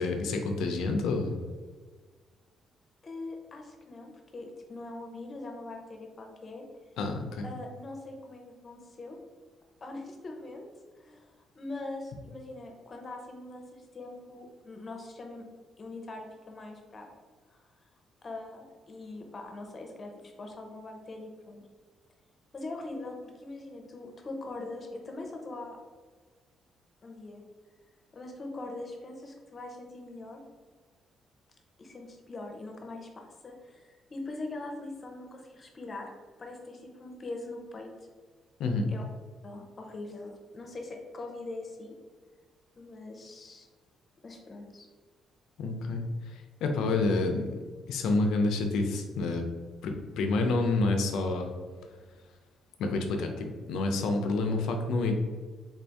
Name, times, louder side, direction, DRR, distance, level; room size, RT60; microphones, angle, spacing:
voice 1, 0.0-1.4 7.0-7.5 38.6-38.9 45.6-46.3 46.6-47.5 47.9-49.4 49.8-51.5 52.8-55.1, left 3 dB, 85° left, 4 dB, 0.5 m, -28 dB
voice 2, 3.0-6.7 7.4-9.2 9.8-10.7 11.0-15.4 15.8-17.1 17.5-17.6 18.2-21.6 22.5-25.8 27.0-27.4 28.1-30.4 31.8-36.1 36.4-37.9 38.9-39.0 39.4-42.0 42.8-43.7 44.2-44.9, left 2 dB, 40° left, 2 dB, 0.7 m, -42 dB
3.7 x 2.6 x 3.4 m, 1.4 s
cardioid pair, 90°, 0 cm